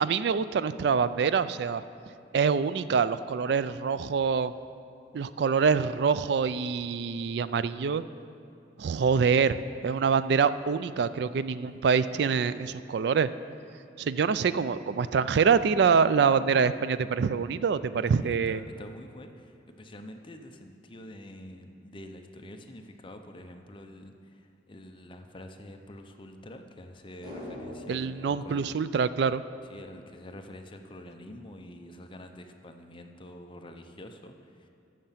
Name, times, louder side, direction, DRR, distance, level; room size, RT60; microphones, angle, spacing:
voice 1, 0.0-1.8 2.3-4.5 5.1-8.0 8.8-13.3 14.0-18.6 27.9-29.4, right 6 dB, 60° right, 14 dB, 0.3 m, -25 dB
voice 2, 18.1-28.6 29.7-34.7, left 1 dB, 25° left, 5 dB, 0.6 m, -46 dB
sound 1, 27.2-29.7 30.0-30.1, left 1 dB, 25° right, 1.9 m, -44 dB
14.0 x 6.5 x 5.8 m, 2.5 s
head